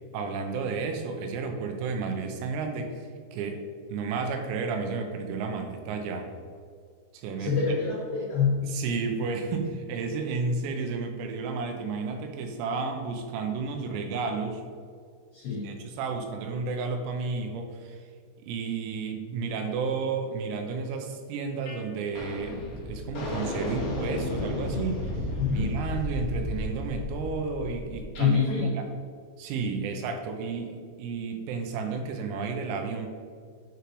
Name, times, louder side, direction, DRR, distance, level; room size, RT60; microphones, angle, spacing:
voice 1, 0.1-3.0 3.3-3.6 3.9-6.3 7.1-7.5 8.6-14.6 15.5-18.0 18.4-25.2 25.5-28.4 28.8-28.9 29.4-33.1, right 4 dB, 85° right, 4 dB, 3.5 m, -32 dB
voice 2, 7.4-8.6 15.3-15.7 25.4-25.7 28.2-28.7, left 5 dB, 90° left, -6 dB, 1.9 m, -26 dB
sound 1, 21.7-21.8 22.1-28.3, left 2 dB, 70° left, 1.5 m, -33 dB
9.8 x 5.1 x 3.1 m, 2.1 s
omnidirectional pair, 6.0 m